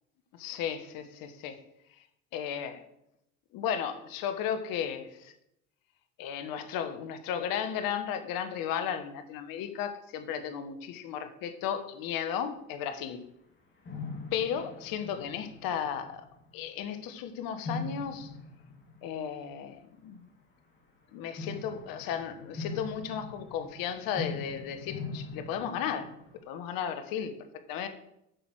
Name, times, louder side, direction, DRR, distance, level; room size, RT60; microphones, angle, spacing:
voice 1, 0.3-1.6 1.9-2.1 2.3-2.8 3.5-5.3 6.2-13.2 14.3-16.3 16.5-18.4 19.0-20.2 21.1-26.1 26.5-27.3 27.7-27.9, left 8 dB, 65° left, 9 dB, 1.3 m, -34 dB
sound 1, 13.0-13.1 13.8-16.7 17.6-19.7 21.4-26.4, left 3 dB, 30° left, 3.0 m, -41 dB
8.0 x 6.2 x 6.2 m, 0.80 s
hypercardioid pair, 75°, 38 cm